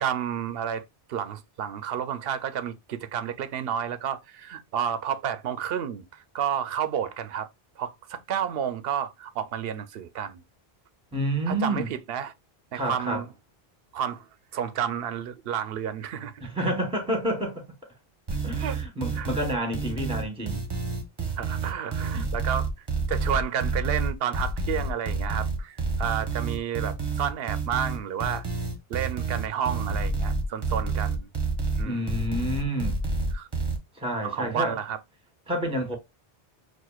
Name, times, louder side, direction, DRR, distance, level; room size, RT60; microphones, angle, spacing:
voice 1, 0.0-7.5 7.8-10.4 11.5-12.3 12.7-13.3 13.9-14.3 14.5-16.7 18.6-18.8 19.2-19.3 21.4-28.4 28.9-31.3 31.8-32.2 33.3-33.5 34.2-35.0, right 8 dB, 70° right, 0.8 m, -31 dB
voice 2, 11.1-11.9 12.7-13.2 16.4-17.6 18.4-20.6 22.1-22.3 31.8-33.0 33.9-34.8 35.5-36.0, right 1 dB, 5° right, 1.0 m, -29 dB
sound 1, 18.3-33.8, right 3 dB, 25° right, 0.8 m, -29 dB
6.0 x 2.5 x 2.3 m
omnidirectional pair, 1.0 m